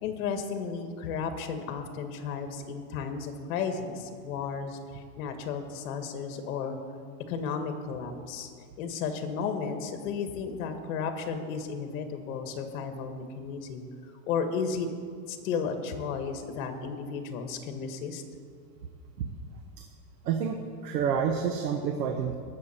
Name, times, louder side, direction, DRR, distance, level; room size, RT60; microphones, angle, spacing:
voice 1, 0.0-6.8 7.3-8.5 8.8-14.9 15.3-18.2, left 6 dB, 60° left, 6 dB, 1.7 m, -34 dB
voice 2, 20.2-22.3, right 7 dB, 85° right, 4 dB, 1.2 m, -28 dB
19.0 x 7.2 x 4.4 m, 2.2 s
supercardioid pair, 155°, 47 cm